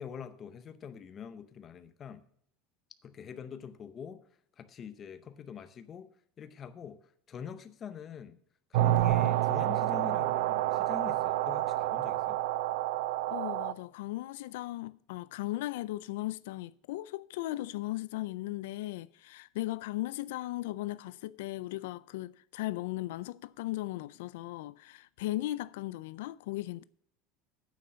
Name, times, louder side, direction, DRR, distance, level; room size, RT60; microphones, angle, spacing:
voice 1, 0.0-2.2 3.0-4.2 4.6-6.1 6.4-7.0 7.3-8.4 8.7-12.4, left 7 dB, 20° left, 0.6 m, -44 dB
sound 1, 8.7-13.7, right 14 dB, 65° right, 0.4 m, -28 dB
voice 2, 13.3-26.8, left 17 dB, 85° left, 0.3 m, -37 dB
9.2 x 6.8 x 6.3 m
cardioid pair, 180°, 0 cm